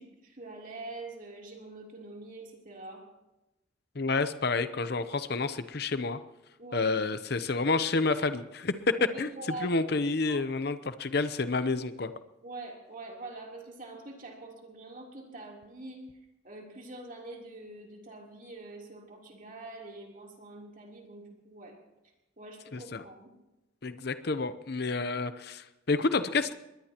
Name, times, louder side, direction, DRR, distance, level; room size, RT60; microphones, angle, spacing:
voice 1, 0.0-3.0 6.6-6.9 9.0-9.9 10.3-10.5 12.4-16.0 16.4-21.8 22.4-23.3, right 2 dB, 45° right, -1 dB, 3.4 m, -44 dB
voice 2, 3.9-6.2 6.7-9.3 9.6-12.1 22.7-23.0 23.8-26.5, left 3 dB, 55° left, 12 dB, 0.8 m, -29 dB
23.5 x 20.5 x 3.0 m, 0.96 s
head